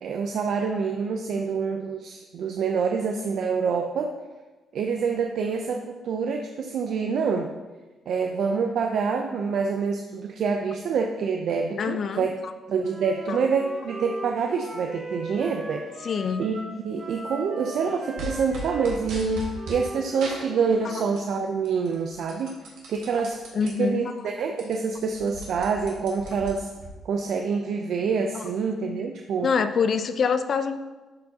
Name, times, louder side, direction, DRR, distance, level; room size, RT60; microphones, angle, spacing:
voice 1, 0.0-4.1 4.7-7.5 8.1-12.3 12.7-16.1 16.4-22.5 22.9-23.4 23.6-26.7 27.0-29.5, right 5 dB, 70° right, 3 dB, 0.5 m, -26 dB
voice 2, 11.8-12.5 13.3-13.4 16.0-16.5 20.8-20.9 23.5-24.1 28.3-28.4 29.4-30.8, left 6 dB, 55° left, 10 dB, 0.5 m, -25 dB
Wind instrument woodwind instrument, 12.8-21.2, right 1 dB, 35° right, 2.2 m, -39 dB
sound 1, 18.2-19.8 20.2-21.3 21.7-23.7 24.2-24.3 24.5-26.9, right 1 dB, 85° right, 1.7 m, -38 dB
11.5 x 4.5 x 2.8 m, 1.2 s
cardioid pair, 90°, 0 cm